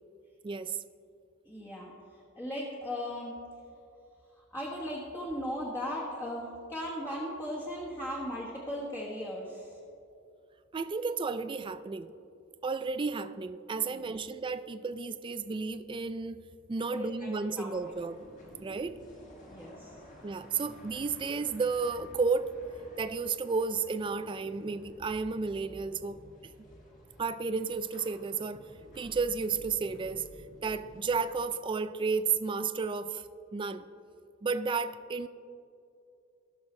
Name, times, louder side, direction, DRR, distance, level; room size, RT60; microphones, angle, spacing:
voice 1, 0.4-0.8 10.7-12.1 12.6-16.4 16.7-18.2 18.6-19.0 20.2-22.5 23.0-26.5 27.2-28.7 29.0-30.3 30.6-33.2 33.5-33.9 34.4-35.3, right 4 dB, 25° right, 11 dB, 0.3 m, -32 dB
voice 2, 1.4-1.9 2.3-3.4 4.5-9.8 13.9-14.1 16.9-17.7 19.5-20.0, equal, 15° left, -5 dB, 1.3 m, -37 dB
sound 1, 17.7-31.4, equal, 40° left, 1.7 m, -53 dB
18.0 x 6.3 x 3.2 m, 2.6 s
head